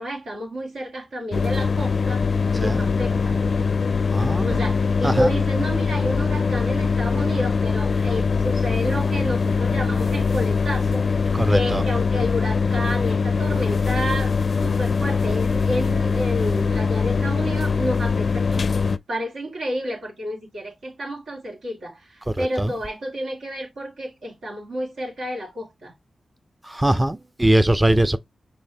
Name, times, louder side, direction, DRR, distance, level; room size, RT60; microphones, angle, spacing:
voice 1, 0.0-3.4 4.4-18.7 19.1-25.9, equal, 85° right, 2.2 m, -30 dB
sound 1, 1.3-19.0, left 5 dB, 60° left, 0.4 m, -22 dB
voice 2, 4.1-4.5 5.0-5.3 11.4-11.8 22.4-22.7 26.7-28.2, right 1 dB, 15° right, 0.5 m, -21 dB
5.5 x 3.3 x 2.8 m
supercardioid pair, 40°, 0 cm